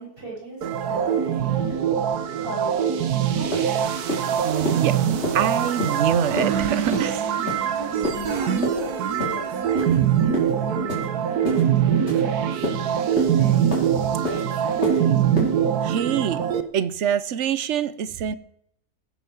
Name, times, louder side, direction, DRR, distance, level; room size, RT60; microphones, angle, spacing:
voice 1, 0.0-1.7 2.2-4.0 7.7-13.7 14.2-15.3, equal, 35° right, -4 dB, 7.9 m, -38 dB
sound 1, 0.6-16.6, right 9 dB, 80° right, 1.5 m, -23 dB
sound 2, 3.0-3.1 3.5-3.7 4.1-4.3 4.6-4.8 5.2-5.4 5.8-6.0 6.4-6.5 6.9-7.1 7.5-7.7 8.0-8.2 8.6-8.8 9.2-9.4 9.8-10.0 10.3-10.5 10.9-11.1 11.4-11.6 12.1-12.2 12.6-12.8 13.2-13.3 13.7-13.9 14.2-14.4 14.8-15.0 15.4-15.5, left 2 dB, 45° left, 4.5 m, -28 dB
voice 2, 4.4-5.0 5.3-7.3 15.8-16.4 16.7-18.4, right 9 dB, 55° right, 15 dB, 1.0 m, -25 dB
16.0 x 9.2 x 7.2 m, 0.71 s
omnidirectional pair, 1.6 m